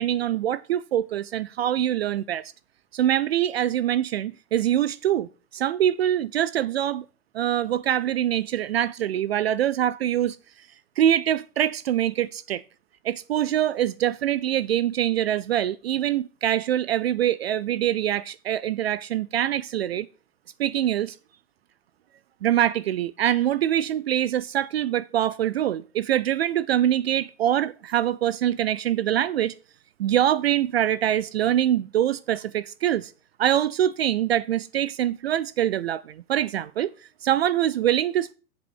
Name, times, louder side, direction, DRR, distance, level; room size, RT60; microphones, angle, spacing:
voice 1, 0.0-2.4 2.9-7.1 7.3-10.4 11.0-12.6 13.0-20.1 20.6-21.2 22.4-29.5 30.0-33.1 33.4-36.9 37.2-38.3, right 11 dB, 45° right, 0.5 m, -24 dB
7.4 x 7.3 x 6.2 m
hypercardioid pair, 120°, 46 cm